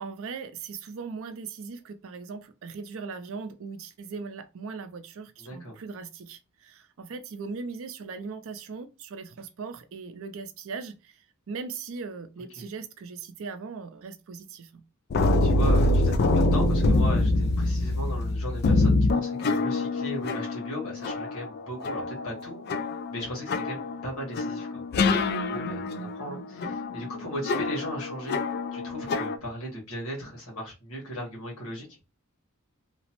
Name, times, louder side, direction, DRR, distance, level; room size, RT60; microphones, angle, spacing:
voice 1, 0.0-14.8, right 4 dB, 65° right, 0.4 m, -39 dB
voice 2, 5.4-5.8 12.6-12.7 15.2-22.8 23.1-28.4 28.7-31.9, equal, 75° left, 1.4 m, -37 dB
sound 1, 15.1-29.4, left 2 dB, 50° left, 0.3 m, -25 dB
2.9 x 2.0 x 2.9 m
head